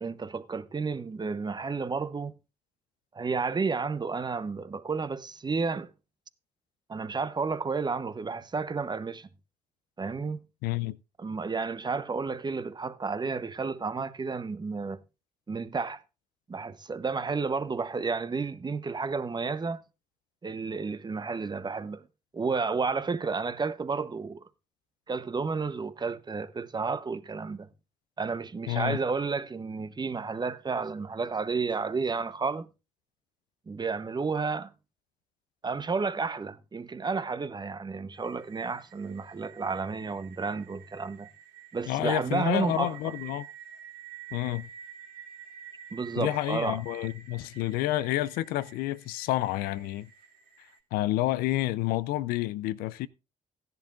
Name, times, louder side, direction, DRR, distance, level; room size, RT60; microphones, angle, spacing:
voice 1, 0.0-2.3 3.1-5.9 6.9-9.3 10.0-10.4 11.2-15.0 15.5-16.0 16.5-19.8 20.4-22.0 22.3-24.4 25.1-27.7 28.2-32.7 33.7-34.7 35.6-41.3 41.7-43.0 45.9-46.8, right 4 dB, 30° right, 0.9 m, -31 dB
voice 2, 10.6-11.0 28.7-29.0 41.9-43.5 44.3-44.7 46.2-50.1 50.9-53.1, left 16 dB, 70° left, 0.5 m, -29 dB
sound 1, 38.1-50.8, right 8 dB, 65° right, 2.5 m, -49 dB
16.0 x 10.5 x 2.5 m
hypercardioid pair, 50°, 16 cm